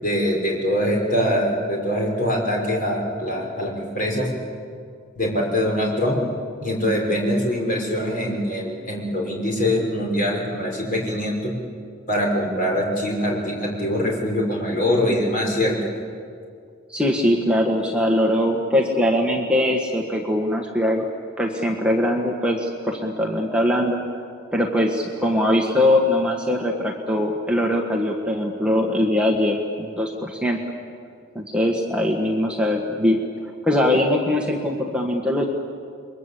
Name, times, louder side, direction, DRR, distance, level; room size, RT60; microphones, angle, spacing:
voice 1, 0.0-4.3 5.2-6.2 6.6-11.5 12.1-15.7, equal, 40° left, -1 dB, 5.7 m, -23 dB
voice 2, 16.9-21.1 21.4-24.0 24.5-30.6 31.3-33.2 33.6-35.5, left 1 dB, 5° right, 0 dB, 1.6 m, -21 dB
29.5 x 23.0 x 8.5 m, 2.3 s
head